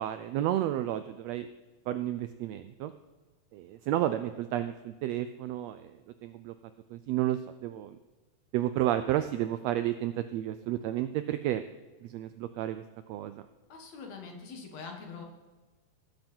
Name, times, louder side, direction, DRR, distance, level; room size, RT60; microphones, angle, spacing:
voice 1, 0.0-1.5 1.9-2.9 3.5-6.0 6.2-6.5 6.9-8.0 8.5-11.6 12.0-12.8 13.1-13.4, right 13 dB, 80° right, 11 dB, 1.5 m, -31 dB
voice 2, 13.7-15.2, left 5 dB, 65° left, 2 dB, 2.8 m, -43 dB
18.5 x 7.8 x 4.5 m, 1.3 s
omnidirectional pair, 3.5 m